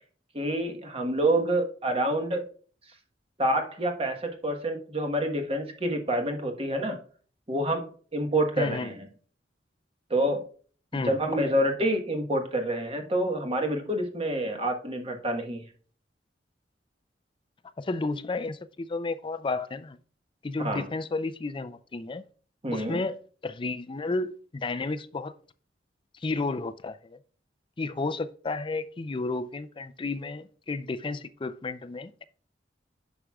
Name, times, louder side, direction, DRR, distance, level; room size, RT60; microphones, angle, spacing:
voice 1, 0.3-2.4 3.4-7.0 7.5-9.1 10.1-10.4 10.9-15.6 20.6-20.8 22.6-23.0, right 1 dB, 35° right, 1.3 m, -27 dB
voice 2, 8.6-8.9 10.9-11.2 17.8-20.0 20.4-22.2 22.7-25.3 26.1-27.2 27.8-32.2, left 3 dB, 30° left, 0.4 m, -32 dB
9.9 x 6.1 x 2.3 m
head